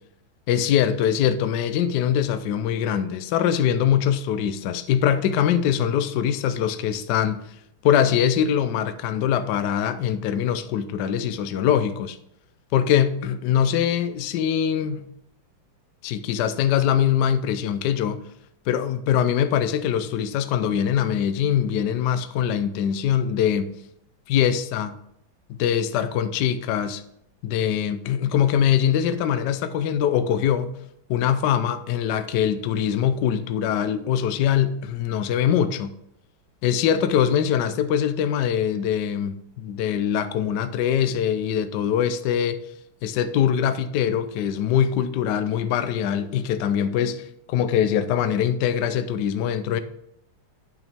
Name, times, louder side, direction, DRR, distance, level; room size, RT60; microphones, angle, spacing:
voice 1, 0.5-7.4 7.8-12.2 12.7-15.0 16.0-18.2 18.7-23.7 24.3-25.0 25.5-27.0 27.4-30.8 31.1-35.9 36.6-42.6 43.0-49.8, left 9 dB, 70° left, 1.0 m, -23 dB
9.2 x 5.9 x 3.5 m
omnidirectional pair, 2.3 m